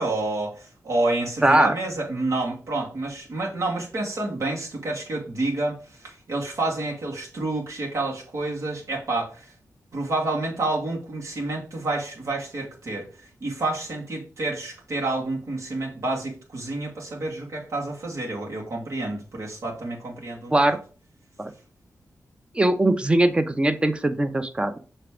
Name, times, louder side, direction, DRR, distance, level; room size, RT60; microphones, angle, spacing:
voice 1, 0.0-9.5 9.9-13.1 13.4-20.8, right 2 dB, 65° right, -3 dB, 2.3 m, -29 dB
voice 2, 1.4-1.7 20.5-20.8 21.4-21.5 22.5-24.8, right 1 dB, 20° right, 10 dB, 0.7 m, -20 dB
6.6 x 3.3 x 5.0 m, 0.37 s
wide cardioid pair, 85°, 6 cm